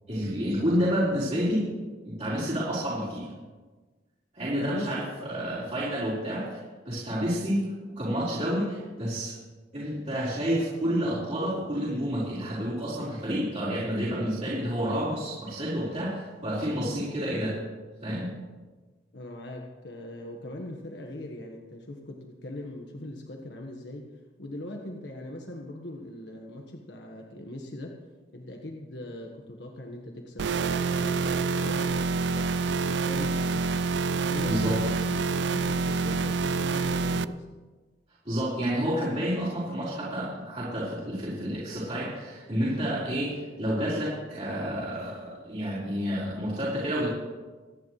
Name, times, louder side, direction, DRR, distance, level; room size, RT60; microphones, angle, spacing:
voice 1, 0.1-1.7 2.0-3.3 4.3-6.6 6.8-7.7 8.0-9.3 9.7-17.6 18.0-18.3 34.4-34.8 38.2-47.1, equal, 40° right, -10 dB, 4.7 m, -29 dB
voice 2, 4.6-5.8 19.1-24.1 24.4-28.0 28.3-33.7 34.1-35.2 35.5-37.4, left 1 dB, 75° left, 1 dB, 1.5 m, -40 dB
sound 1, 30.4-37.2, right 4 dB, 75° right, 0.4 m, -27 dB
27.0 x 10.5 x 3.3 m, 1.3 s
head